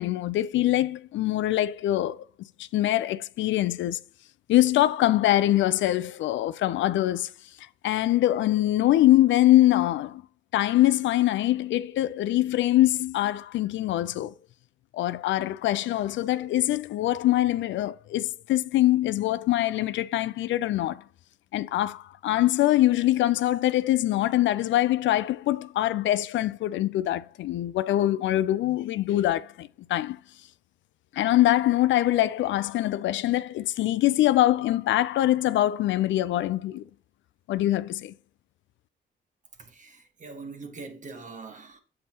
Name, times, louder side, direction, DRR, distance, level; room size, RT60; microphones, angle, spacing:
voice 1, 0.0-2.2 2.6-4.0 4.5-7.3 7.8-10.2 10.5-14.3 14.9-21.0 21.5-30.2 31.1-36.8 37.5-38.1, left 14 dB, 70° left, 0.4 m, -23 dB
voice 2, 39.6-41.8, right 4 dB, 40° right, 1.4 m, -42 dB
7.8 x 5.4 x 2.9 m
cardioid pair, 90°, 20 cm